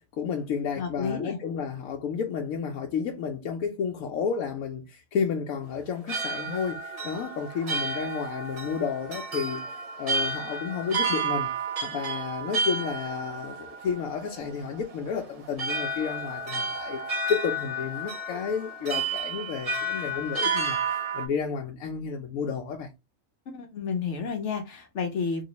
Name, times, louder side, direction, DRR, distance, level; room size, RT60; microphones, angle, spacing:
voice 1, 0.0-11.5 11.8-22.9, left 6 dB, 85° left, 1.0 m, -31 dB
voice 2, 0.8-1.4 23.5-25.4, left 5 dB, 65° left, 1.0 m, -31 dB
sound 1, 5.8-21.3, right 3 dB, 50° right, 0.4 m, -31 dB
3.1 x 3.0 x 2.8 m
omnidirectional pair, 1.4 m